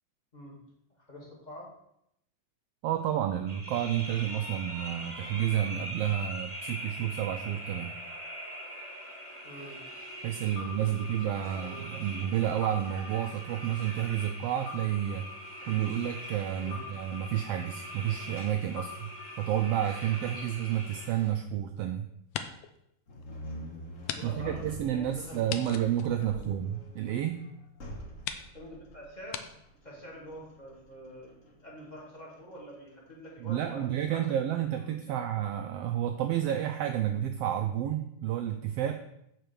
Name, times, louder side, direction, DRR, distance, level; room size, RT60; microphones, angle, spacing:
voice 1, 1.0-1.7 9.4-9.8 10.6-12.0 16.6-16.9 23.5-23.6 24.2-26.6 28.5-29.5 29.8-35.2, equal, 15° left, -3 dB, 1.8 m, -47 dB
voice 2, 2.8-7.9 10.2-15.3 15.7-19.1 19.4-22.1 24.2-27.5 33.4-39.0, right 11 dB, 90° right, 6 dB, 1.3 m, -30 dB
sound 1, 3.5-21.3, equal, 15° right, 1.0 m, -42 dB
sound 2, 20.8-21.8 22.2-22.8 23.2-23.3 24.0-24.2 24.5-24.6 25.5-27.0 27.7-27.8 28.2-28.5 29.3-29.4, left 9 dB, 75° left, 1.5 m, -39 dB
sound 3, 23.1-34.2, left 1 dB, 45° left, 1.0 m, -46 dB
7.8 x 4.6 x 6.7 m, 0.78 s
omnidirectional pair, 3.3 m